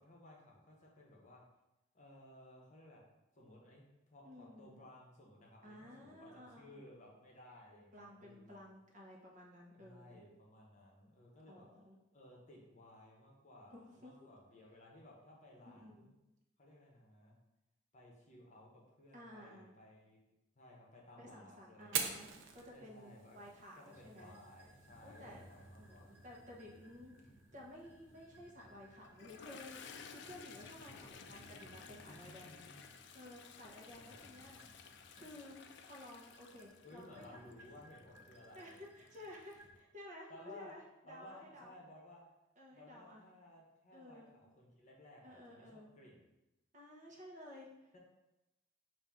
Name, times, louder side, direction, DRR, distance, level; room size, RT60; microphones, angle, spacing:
voice 1, 0.0-1.4 1.9-3.0 3.3-8.6 9.8-11.6 12.1-16.1 16.6-17.3 17.9-22.1 22.7-23.4 23.7-26.1 32.0-32.9 33.9-34.7 36.8-38.8 40.3-40.7 41.0-42.2 42.7-46.2 47.9-48.0, left 1 dB, 40° left, -2 dB, 0.9 m, -58 dB
voice 2, 4.2-4.8 5.6-6.8 7.7-10.2 11.5-12.0 13.7-14.3 15.6-16.1 19.1-19.7 21.2-24.4 25.0-25.4 25.8-27.1 27.5-32.7 32.9-34.8 35.1-37.4 38.5-41.7 42.6-43.2 43.9-44.3 45.2-45.9 46.7-48.0, left 1 dB, 40° right, -3 dB, 0.9 m, -54 dB
Fire, 21.8-29.8, right 6 dB, 80° right, 0.5 m, -47 dB
sound 1, 23.9-39.8, right 1 dB, 10° right, 0.6 m, -62 dB
Toilet flush, 29.0-39.6, left 6 dB, 60° left, 0.3 m, -55 dB
5.5 x 2.6 x 3.5 m, 0.95 s
head